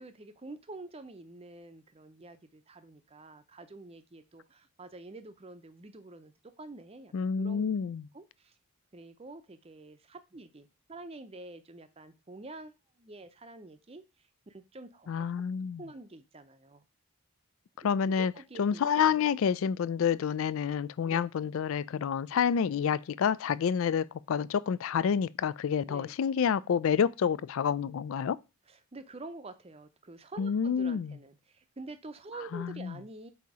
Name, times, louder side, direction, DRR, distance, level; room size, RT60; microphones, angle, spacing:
voice 1, 0.0-7.6 8.1-8.6 8.9-15.3 15.8-16.8 18.0-19.2 21.0-21.2 25.9-26.2 28.7-33.3, right 2 dB, 25° right, 0.6 m, -47 dB
voice 2, 7.1-8.0 15.1-15.8 17.8-18.3 18.6-28.4 30.4-31.1 32.5-32.9, left 7 dB, 65° left, 0.3 m, -28 dB
7.9 x 2.8 x 4.7 m
head